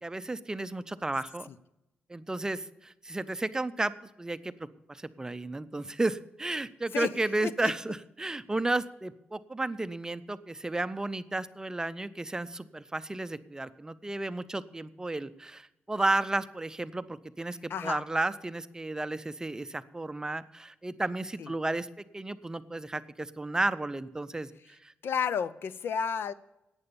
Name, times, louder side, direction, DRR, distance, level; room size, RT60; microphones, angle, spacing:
voice 1, 0.0-1.5 2.1-3.9 4.2-24.9, right 2 dB, 15° right, 13 dB, 0.5 m, -33 dB
voice 2, 17.7-18.0 21.4-21.5 25.0-26.3, left 7 dB, 70° left, 16 dB, 0.6 m, -31 dB
11.0 x 8.9 x 6.8 m, 0.90 s
cardioid pair, 100°, 4 cm